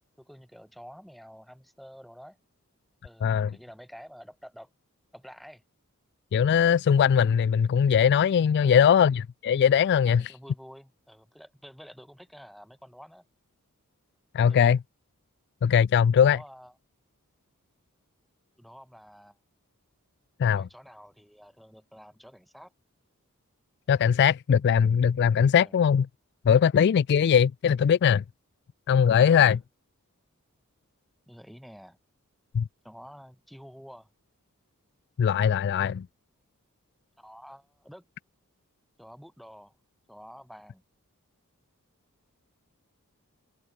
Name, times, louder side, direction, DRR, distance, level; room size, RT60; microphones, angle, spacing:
voice 1, 0.2-2.4 3.0-4.7 5.1-5.6 8.6-8.9 10.1-13.2 14.5-14.8 16.1-16.7 18.6-19.4 20.5-22.7 25.6-25.8 29.3-29.6 31.3-32.0 32.8-34.1 37.2-38.0 39.0-39.8 40.1-40.8, equal, ahead, 4.9 m, -49 dB
voice 2, 6.3-10.3 14.3-14.8 15.6-16.4 20.4-20.7 23.9-26.1 26.5-28.2 28.9-29.6 32.5-32.6 35.2-36.1, left 7 dB, 50° left, 0.3 m, -21 dB
head